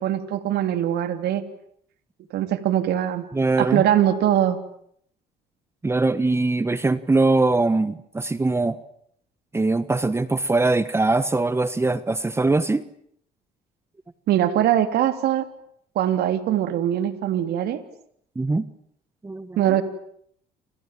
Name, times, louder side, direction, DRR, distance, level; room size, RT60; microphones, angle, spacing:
voice 1, 0.0-1.4 2.3-3.2 3.6-4.6 14.3-15.5 15.9-17.8 19.6-19.8, right 11 dB, 75° right, 9 dB, 3.3 m, -22 dB
voice 2, 3.3-3.8 5.8-8.8 9.5-12.8 18.3-18.6 19.2-19.8, right 3 dB, 15° right, 14 dB, 1.3 m, -22 dB
29.0 x 27.0 x 7.6 m, 0.69 s
cardioid pair, 110°, 17 cm